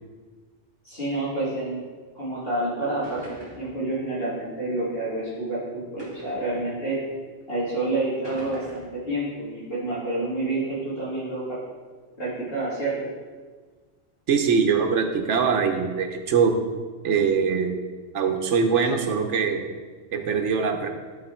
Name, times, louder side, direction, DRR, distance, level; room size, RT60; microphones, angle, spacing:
voice 1, 0.8-1.8 2.1-7.0 7.5-11.6 12.2-13.1, right 2 dB, 55° left, -11 dB, 2.3 m, -28 dB
sound 1, 2.4-2.5 3.0-3.8 4.7-4.8 6.0-6.5 7.4-7.5 8.2-9.0, equal, 20° right, 2.0 m, -43 dB
voice 2, 14.3-16.5 17.0-17.8 18.1-19.6 20.1-20.9, right 6 dB, 75° right, 4 dB, 1.1 m, -22 dB
11.5 x 4.2 x 4.4 m, 1.5 s
omnidirectional pair, 1.2 m